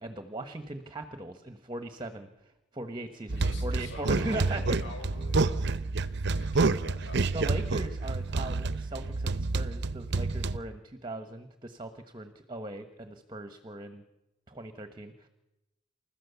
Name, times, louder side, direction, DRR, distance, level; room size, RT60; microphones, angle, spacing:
voice 1, 0.0-2.3 2.7-4.8 7.3-14.0 14.5-15.3, right 2 dB, 25° right, 9 dB, 1.3 m, -39 dB
voice 2, 3.3-7.6, left 1 dB, 75° left, 3 dB, 6.0 m, -47 dB
sound 1, 3.3-10.6, right 3 dB, 65° right, 0.7 m, -29 dB
28.5 x 13.5 x 7.0 m, 0.99 s
head